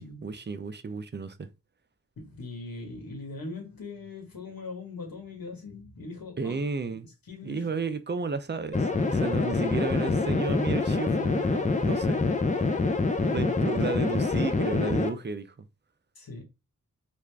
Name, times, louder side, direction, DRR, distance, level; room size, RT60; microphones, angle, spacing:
voice 1, 0.0-1.5 6.4-7.1 7.4-12.3 13.3-15.7, right 4 dB, 30° right, 0.4 m, -33 dB
voice 2, 2.2-7.0 7.3-7.7 16.1-16.4, left 3 dB, 80° left, 1.3 m, -41 dB
sound 1, 8.7-15.1, left 3 dB, 20° left, 0.5 m, -26 dB
3.5 x 2.4 x 3.3 m
wide cardioid pair, 85°, 35 cm